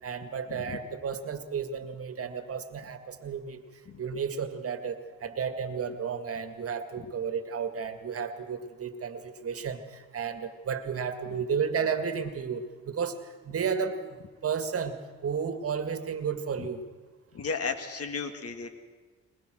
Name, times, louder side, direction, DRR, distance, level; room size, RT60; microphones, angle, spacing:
voice 1, 0.0-3.6 4.0-14.2 14.4-16.8, right 6 dB, 50° right, 9 dB, 2.0 m, -33 dB
voice 2, 17.3-18.7, left 5 dB, 50° left, 9 dB, 2.1 m, -34 dB
21.5 x 21.5 x 6.3 m, 1.4 s
cardioid pair, 90°, 30 cm